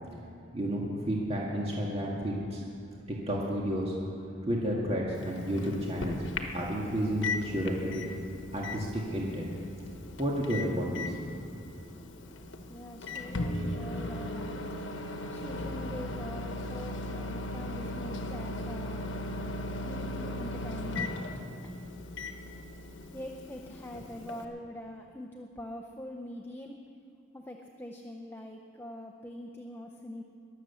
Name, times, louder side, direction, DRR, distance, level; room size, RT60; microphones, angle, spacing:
voice 1, 0.5-2.6 3.1-4.0 4.4-6.2 6.5-8.0 8.5-9.5 10.2-11.2, equal, 30° right, -3 dB, 1.8 m, -31 dB
Microwave oven, 5.1-24.4, left 2 dB, 70° left, 1.2 m, -38 dB
voice 2, 12.7-14.6 15.3-19.1 19.8-21.1 23.1-26.7 27.3-30.2, left 1 dB, 10° left, 1 dB, 0.7 m, -43 dB
21.5 x 7.6 x 7.0 m, 2.4 s
head